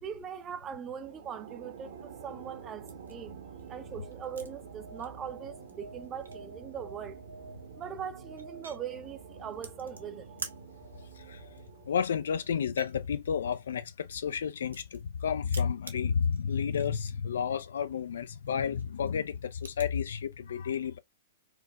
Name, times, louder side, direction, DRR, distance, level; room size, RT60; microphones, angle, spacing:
voice 1, 0.0-3.4 3.7-7.2 7.8-10.3, right 8 dB, 25° right, 0.5 m, -41 dB
sound 1, 0.9-13.5, right 6 dB, 60° right, 1.0 m, -48 dB
sound 2, 2.9-3.1 3.6-4.6 4.9-5.3 5.6-5.7 6.0-6.5 7.5-7.6 8.0-8.8 9.5-10.6 10.9-11.2 11.5-12.1 12.6-15.2 15.4-17.1 17.4-17.5 17.9-18.1 18.5-19.9, right 3 dB, 85° right, 0.8 m, -47 dB
voice 2, 11.9-21.0, left 7 dB, 65° left, 0.4 m, -31 dB
4.6 x 2.1 x 2.2 m
figure-of-eight pair, 110°, 0 cm